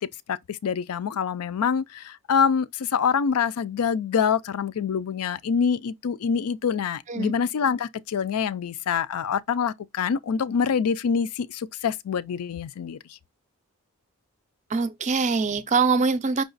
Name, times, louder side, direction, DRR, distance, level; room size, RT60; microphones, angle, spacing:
voice 1, 0.3-13.0, left 6 dB, 85° left, 0.4 m, -25 dB
voice 2, 14.7-16.4, right 4 dB, 30° right, 0.4 m, -23 dB
5.6 x 2.3 x 3.9 m
head